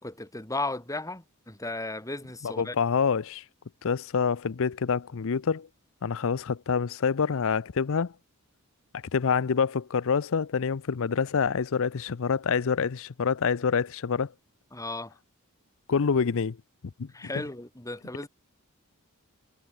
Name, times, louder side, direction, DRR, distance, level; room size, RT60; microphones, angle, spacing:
voice 1, 0.0-2.8 14.7-15.2 17.1-18.3, left 2 dB, 15° left, 3.5 m, -35 dB
voice 2, 2.4-3.4 3.8-5.7 6.0-8.1 9.1-14.3 15.9-16.6 17.0-17.1, left 6 dB, 65° left, 0.6 m, -26 dB
head